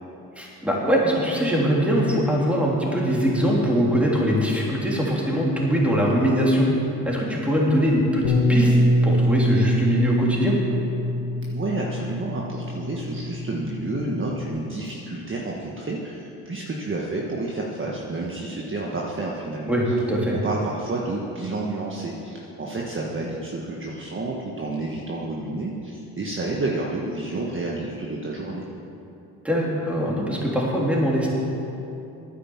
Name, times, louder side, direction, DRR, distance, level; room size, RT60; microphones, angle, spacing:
voice 1, 0.3-6.7 7.0-8.8 9.0-10.5 19.7-20.3 29.4-31.3, equal, 5° right, -4 dB, 3.3 m, -22 dB
Bass guitar, 8.2-14.5, equal, 70° left, 1.7 m, -24 dB
voice 2, 11.5-19.7 20.3-28.7, right 2 dB, 30° right, -3 dB, 1.5 m, -30 dB
9.6 x 9.4 x 7.3 m, 2.9 s
supercardioid pair, 75°, 42 cm